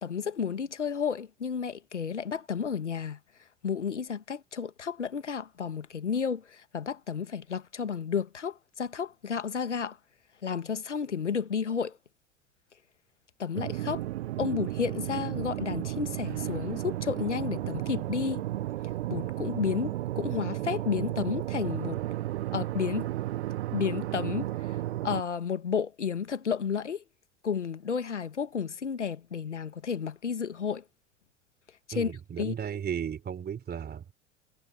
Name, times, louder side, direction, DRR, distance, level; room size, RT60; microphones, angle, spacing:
voice 1, 0.0-3.2 3.6-10.0 10.4-12.0 13.4-14.0 14.4-18.4 19.1-22.0 22.5-23.1 23.7-24.8 25.0-27.0 27.4-30.8 31.9-32.1 32.4-32.5, left 6 dB, 80° left, 1.6 m, -32 dB
sound 1, 13.5-25.2, right 15 dB, 65° right, 0.5 m, -33 dB
voice 2, 31.9-34.1, right 8 dB, 30° right, 4.4 m, -35 dB
figure-of-eight pair, 75°, 35 cm